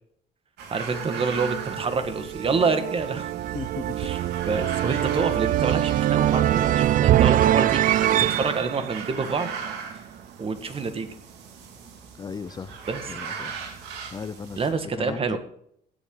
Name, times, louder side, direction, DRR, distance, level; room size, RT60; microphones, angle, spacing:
sound 1, 0.6-14.7, right 6 dB, 80° right, 2.7 m, -39 dB
voice 1, 0.7-3.3 4.0-4.2 4.4-9.5 10.4-11.1 12.9-13.0 14.6-15.4, right 4 dB, 35° right, 1.7 m, -27 dB
sound 2, 0.9-10.0, right 13 dB, 55° right, 0.4 m, -24 dB
voice 2, 3.5-4.0 12.2-12.8 13.1-13.6 14.1-14.7 15.0-15.4, left 5 dB, 25° left, 0.5 m, -36 dB
16.0 x 8.7 x 3.9 m
cardioid pair, 110°, 17 cm